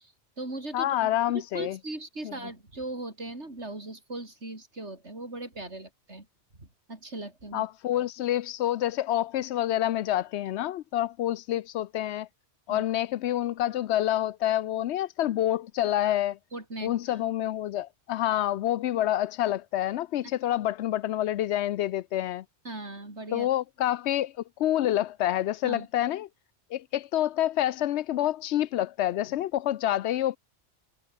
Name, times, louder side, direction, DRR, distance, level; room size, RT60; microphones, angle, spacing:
voice 1, 0.0-6.3 6.5-7.7 12.7-12.8 16.5-17.2 22.6-23.5 25.6-25.9, right 2 dB, 80° right, 5.4 m, -39 dB
voice 2, 0.7-1.8 2.2-2.3 7.5-12.3 12.7-16.4 16.8-22.4 23.3-26.3 26.7-30.4, left 13 dB, 75° left, 0.8 m, -27 dB
omnidirectional pair, 1.1 m